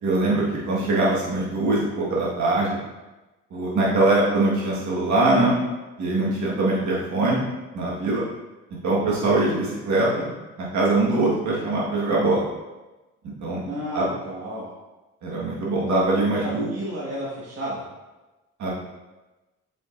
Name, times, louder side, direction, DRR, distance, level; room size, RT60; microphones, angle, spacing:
voice 1, 0.0-2.8 3.5-5.6 6.0-7.4 7.7-8.2 8.8-10.3 10.6-12.5 13.4-13.6 13.9-14.0 15.2-16.7 18.6-18.7, right 2 dB, 70° right, -5 dB, 1.6 m, -22 dB
voice 2, 13.6-14.7 16.3-17.8, right 1 dB, 55° right, -7 dB, 1.6 m, -32 dB
7.8 x 5.2 x 2.6 m, 1.1 s
cardioid pair, 90°, 30 cm